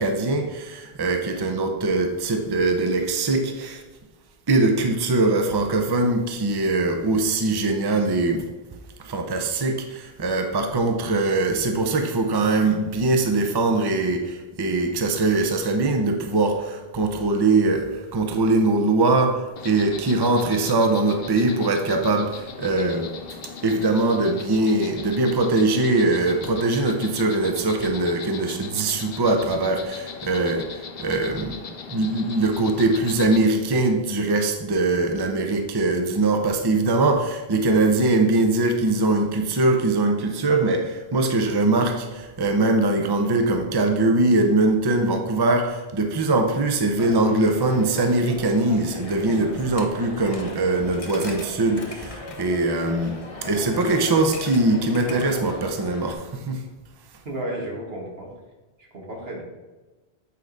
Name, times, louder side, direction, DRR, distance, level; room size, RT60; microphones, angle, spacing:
voice 1, 0.0-3.8 4.5-8.5 9.0-19.4 19.6-23.1 23.6-30.7 31.0-31.6 31.9-53.1 53.4-56.6, right 2 dB, 30° right, 4 dB, 0.6 m, -22 dB
Insect, 19.6-33.4, left 6 dB, 70° left, 0.8 m, -39 dB
Coin (dropping), 47.0-56.1, left 2 dB, 35° left, 0.9 m, -38 dB
voice 2, 57.3-58.3 58.9-59.4, right 1 dB, 75° right, -2 dB, 1.9 m, -32 dB
8.4 x 4.8 x 3.9 m, 1.2 s
omnidirectional pair, 1.0 m